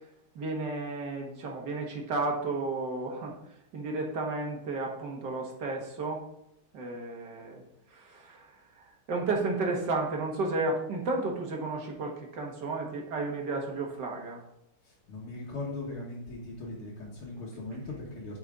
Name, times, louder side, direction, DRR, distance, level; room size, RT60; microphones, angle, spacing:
voice 1, 0.4-3.3 3.7-6.2 6.7-7.6 7.9-14.4, right 3 dB, 55° right, 1 dB, 1.9 m, -33 dB
voice 2, 14.8-18.4, left 2 dB, 75° left, -6 dB, 2.2 m, -39 dB
8.5 x 5.5 x 3.7 m, 0.80 s
omnidirectional pair, 2.4 m